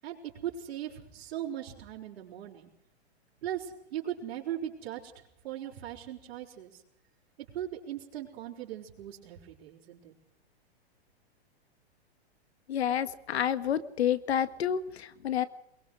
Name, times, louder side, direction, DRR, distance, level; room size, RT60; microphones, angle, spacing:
voice 1, 0.0-2.7 3.4-6.8 7.4-10.1, right 11 dB, 65° right, -7 dB, 5.2 m, -39 dB
voice 2, 12.7-15.4, left 9 dB, 75° left, 12 dB, 1.9 m, -29 dB
22.5 x 22.0 x 6.4 m, 0.79 s
hypercardioid pair, 130°, 32 cm